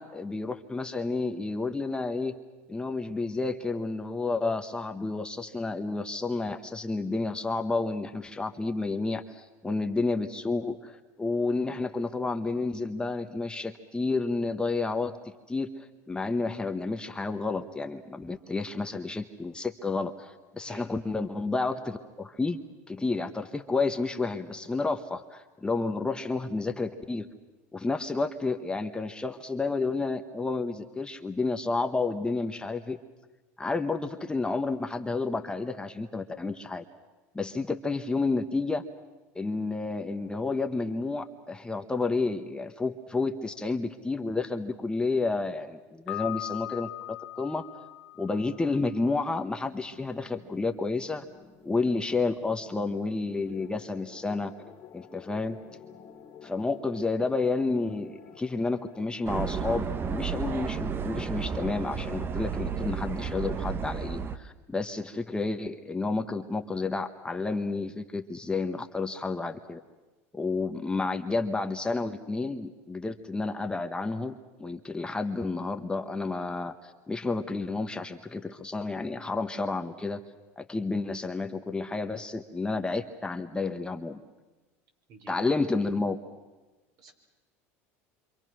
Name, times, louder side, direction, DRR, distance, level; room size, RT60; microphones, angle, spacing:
voice 1, 0.0-2.4 2.7-15.2 15.5-22.6 22.9-27.3 27.7-33.0 33.6-36.9 37.3-38.8 39.3-47.7 48.2-51.3 51.6-54.5 54.9-55.6 56.4-69.8 70.3-74.3 74.6-80.2 80.6-84.2 85.3-86.2, left 3 dB, 10° left, 6 dB, 1.2 m, -30 dB
Piano, 46.1-49.0, left 18 dB, 90° left, 1.4 m, -39 dB
sound 1, 49.5-59.2, left 7 dB, 40° left, 2.1 m, -52 dB
sound 2, 59.3-64.4, right 6 dB, 30° right, 1.1 m, -32 dB
voice 2, 85.1-85.5 87.0-87.1, right 3 dB, 55° right, 1 dB, 6.2 m, -50 dB
27.0 x 26.0 x 6.3 m, 1.2 s
supercardioid pair, 100°, 7 cm